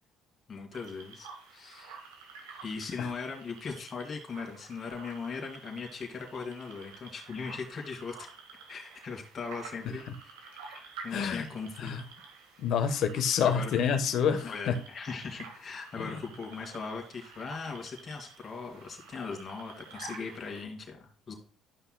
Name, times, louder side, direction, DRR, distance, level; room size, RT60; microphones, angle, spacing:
voice 1, 0.5-2.0 2.6-8.3 8.7-10.1 10.5-11.9 13.4-13.7 14.4-21.3, left 5 dB, 45° left, 1 dB, 2.4 m, -39 dB
sound 1, 0.7-20.6, right 5 dB, 90° right, 1.7 m, -50 dB
voice 2, 11.1-11.5 11.8-12.0 12.6-14.7 16.0-16.2, left 7 dB, 65° left, 8 dB, 1.2 m, -28 dB
12.5 x 5.7 x 2.2 m, 0.39 s
supercardioid pair, 70°, 0 cm